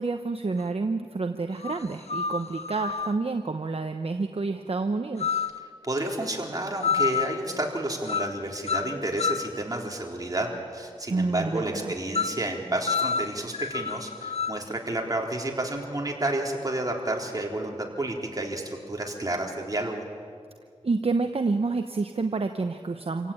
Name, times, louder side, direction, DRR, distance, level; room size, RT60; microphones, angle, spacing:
voice 1, 0.0-5.4 11.1-11.9 20.8-23.3, right 3 dB, 60° right, 6 dB, 1.0 m, -28 dB
sound 1, 0.6-0.7 1.6-3.2 5.2-5.6 6.8-7.4 8.0-8.4 8.7-9.5 12.1-12.4 12.9-14.6, left 6 dB, 65° left, 0.7 m, -28 dB
voice 2, 5.8-20.0, right 1 dB, 35° right, 0 dB, 3.9 m, -30 dB
27.5 x 17.0 x 8.9 m, 2.1 s
wide cardioid pair, 60°, 11 cm